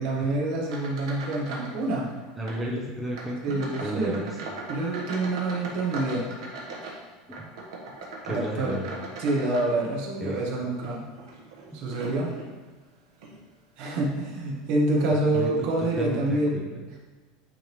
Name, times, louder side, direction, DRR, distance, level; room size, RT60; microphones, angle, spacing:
voice 1, 0.0-2.1 3.4-4.2 4.7-6.2 6.8-6.9 8.3-8.7 9.2-11.0 11.7-12.3 13.8-16.6, right 2 dB, 55° right, -2 dB, 1.4 m, -27 dB
sound 1, 0.6-1.8 2.1-2.6 3.1-10.2 10.7-12.5 13.1-13.4 13.9-14.1 14.9-15.0 15.3-15.5, right 3 dB, 90° right, 1.2 m, -40 dB
voice 2, 2.4-4.3 7.3-7.5 8.2-9.0 10.2-10.4 11.7-11.8 15.3-15.5 16.0-16.6, right 1 dB, 5° right, -3 dB, 0.6 m, -33 dB
8.7 x 3.6 x 3.1 m, 1.3 s
supercardioid pair, 160°, 3 cm